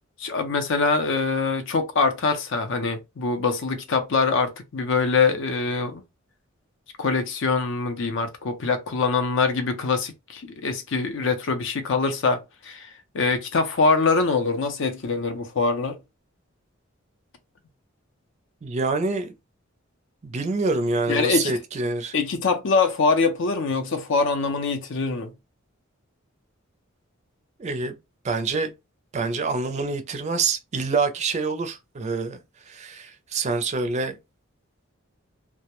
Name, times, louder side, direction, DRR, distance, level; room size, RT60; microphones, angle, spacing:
voice 1, 0.2-6.0 7.0-16.0 21.1-21.5 22.1-25.3, left 4 dB, 65° left, 0.5 m, -24 dB
voice 2, 18.6-19.3 20.2-22.1 27.6-28.0 28.2-28.7 29.1-32.4 32.7-34.2, right 4 dB, 35° right, 0.4 m, -26 dB
2.2 x 2.1 x 2.9 m
head